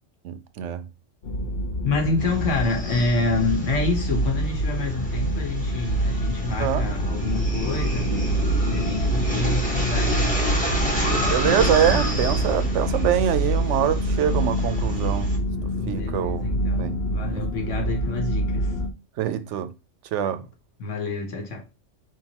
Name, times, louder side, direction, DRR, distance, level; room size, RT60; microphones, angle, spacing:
voice 1, 0.2-0.9 6.6-6.9 11.3-15.3 15.9-16.4 16.8-17.0 17.3-17.4 19.2-19.7 20.1-20.4, right 10 dB, 75° right, 0.9 m, -24 dB
sound 1, 1.2-18.9, right 1 dB, 60° left, 0.9 m, -26 dB
voice 2, 1.8-8.1 8.6-10.6 15.7-18.7 20.8-21.6, left 3 dB, 80° left, 1.5 m, -28 dB
sound 2, 2.2-15.4, equal, 5° left, 1.0 m, -29 dB
4.7 x 3.7 x 2.9 m
omnidirectional pair, 1.3 m